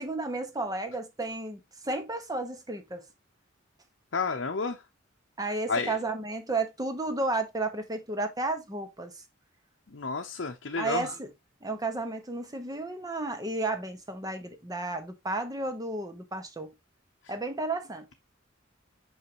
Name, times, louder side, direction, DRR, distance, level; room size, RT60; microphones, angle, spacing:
voice 1, 0.0-3.0 5.4-9.1 10.8-11.3 11.6-16.7 17.3-18.1, right 2 dB, 20° right, 1.1 m, -32 dB
voice 2, 4.1-4.8 5.7-6.0 9.9-11.1, left 4 dB, 65° left, 0.8 m, -31 dB
6.5 x 5.6 x 2.9 m
head